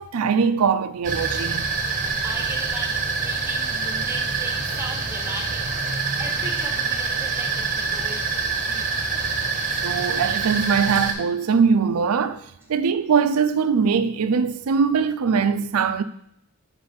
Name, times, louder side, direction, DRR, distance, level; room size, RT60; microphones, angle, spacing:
voice 1, 0.0-1.7 9.8-12.4 12.7-16.0, right 6 dB, 85° right, 0.4 m, -21 dB
sound 1, 1.0-11.1, right 4 dB, 35° right, 0.9 m, -26 dB
voice 2, 2.2-5.9 6.2-8.9 9.4-9.6, right 1 dB, 10° right, 1.0 m, -37 dB
5.6 x 4.0 x 5.2 m
head